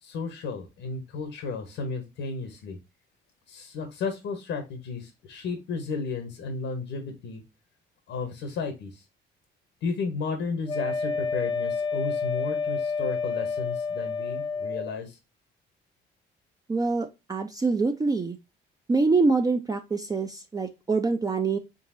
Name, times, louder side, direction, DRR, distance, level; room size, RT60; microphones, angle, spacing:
voice 1, 0.0-2.8 3.5-7.4 8.1-9.0 9.8-15.2, left 4 dB, 80° left, 5 dB, 0.9 m, -33 dB
Wind instrument woodwind instrument, 10.7-14.9, left 5 dB, 25° left, 0.7 m, -29 dB
voice 2, 16.7-18.4 18.9-21.6, right 3 dB, 20° right, 6 dB, 0.4 m, -25 dB
3.8 x 3.8 x 2.5 m, 0.25 s
cardioid pair, 90°, 20 cm